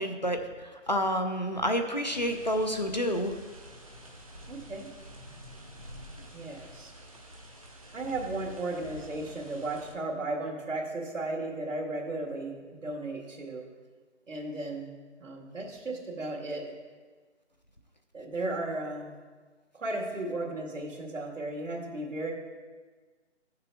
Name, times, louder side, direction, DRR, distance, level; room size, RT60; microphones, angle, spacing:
voice 1, 0.0-3.3, equal, 35° left, 5 dB, 0.5 m, -29 dB
sound 1, 2.1-9.9, equal, 30° right, 0.6 m, -49 dB
voice 2, 4.5-4.9 6.3-6.9 7.9-13.6 14.3-14.9 15.2-16.7 18.1-19.2 19.7-22.3, right 2 dB, 85° right, -1 dB, 2.2 m, -35 dB
11.5 x 6.7 x 3.4 m, 1.4 s
hypercardioid pair, 170°, 37 cm